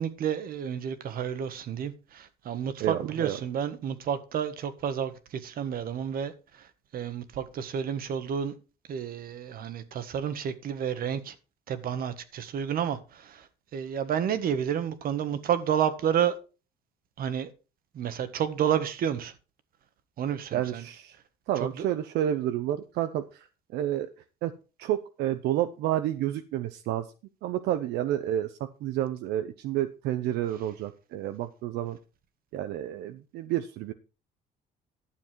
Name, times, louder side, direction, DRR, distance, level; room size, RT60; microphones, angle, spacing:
voice 1, 0.0-6.3 6.6-6.7 6.9-8.5 8.9-11.3 11.7-13.4 13.7-16.4 17.2-17.5 17.9-19.3 20.2-20.8 21.8-21.9, right 8 dB, 60° right, 1.5 m, -30 dB
voice 2, 2.8-3.4 20.5-21.2 21.5-24.1 24.4-24.5 24.8-27.1 27.4-32.0 32.5-33.9, right 12 dB, 85° right, 0.8 m, -30 dB
12.0 x 7.3 x 4.6 m
cardioid pair, 110°, 17 cm